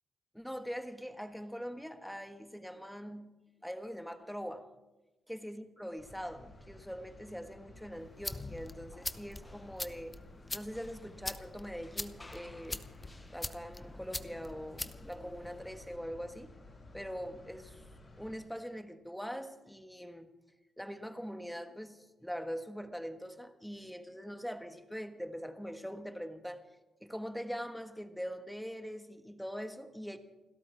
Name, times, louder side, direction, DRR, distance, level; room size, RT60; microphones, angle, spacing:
voice 1, 0.3-3.3 3.6-4.7 5.3-10.2 10.5-12.9 13.3-16.5 16.9-17.8 18.2-20.3 20.8-26.6 27.0-30.2, equal, ahead, 7 dB, 1.4 m, -42 dB
sound 1, 6.0-18.4, left 2 dB, 35° left, 5.8 m, -55 dB
sound 2, 7.9-16.0, left 2 dB, 15° left, 0.7 m, -44 dB
29.0 x 13.0 x 3.5 m, 1.1 s
cardioid pair, 110°, 0 cm